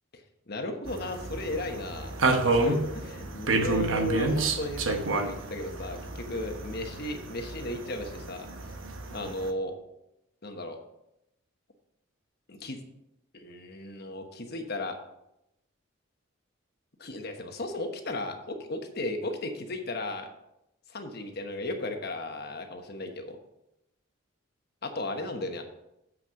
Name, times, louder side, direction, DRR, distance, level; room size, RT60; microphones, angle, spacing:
voice 1, 0.5-8.5 9.1-9.7 10.4-10.8 12.5-12.8 13.3-15.0 17.0-20.3 20.9-23.4 24.8-25.6, left 2 dB, 50° left, 5 dB, 1.1 m, -35 dB
sound 1, 0.9-9.5, right 2 dB, 75° right, 1.0 m, -30 dB
7.5 x 6.2 x 5.7 m, 0.86 s
head